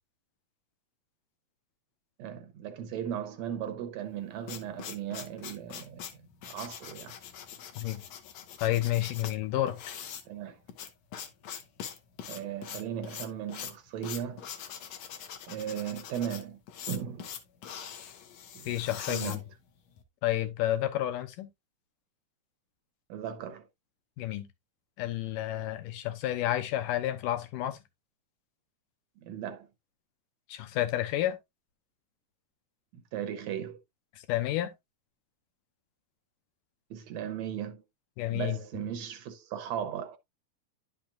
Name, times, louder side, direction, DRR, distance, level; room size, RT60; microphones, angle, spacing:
voice 1, 2.2-6.1 6.4-7.1 10.3-10.6 12.3-14.5 15.5-16.6 16.9-17.3 18.6-18.7 19.0-19.4 23.1-23.7 29.2-29.7 32.9-33.8 36.9-37.8 38.3-40.2, right 9 dB, 75° right, 1.8 m, -37 dB
sound 1, 4.1-20.0, left 8 dB, 65° left, 2.0 m, -43 dB
voice 2, 8.6-9.8 18.7-19.4 20.2-21.5 24.2-24.5 25.0-27.8 30.5-31.4 34.3-34.7 38.2-38.6, left 13 dB, 90° left, 2.5 m, -30 dB
10.5 x 5.8 x 2.4 m
omnidirectional pair, 3.7 m